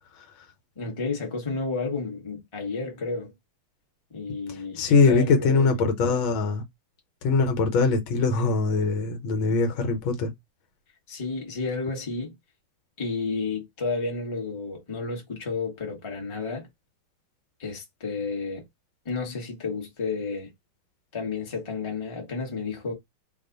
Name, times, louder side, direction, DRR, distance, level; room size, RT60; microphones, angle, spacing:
voice 1, 0.8-3.3 4.1-5.7 11.1-12.3 13.0-16.7 17.6-18.6 19.0-20.5 21.1-22.9, left 4 dB, 20° left, 0.8 m, -31 dB
voice 2, 4.5-6.6 7.2-10.3, left 4 dB, 80° left, 1.6 m, -22 dB
3.3 x 2.4 x 3.8 m
omnidirectional pair, 2.3 m